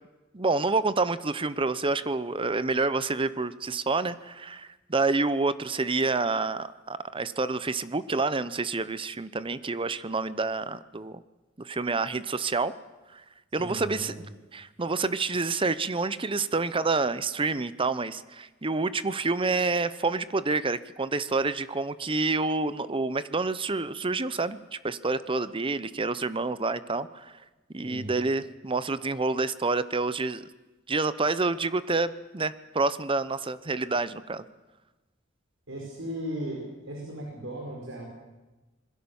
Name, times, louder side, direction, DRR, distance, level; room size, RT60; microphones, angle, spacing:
voice 1, 0.3-11.2 11.6-12.7 13.1-13.2 13.5-14.2 14.5-27.4 27.7-30.4 30.9-34.4, right 3 dB, 25° right, 15 dB, 0.8 m, -28 dB
voice 2, 13.6-14.3 27.8-28.1 35.7-38.1, right 1 dB, 80° right, -1 dB, 5.4 m, -37 dB
26.5 x 21.5 x 7.2 m, 1.1 s
head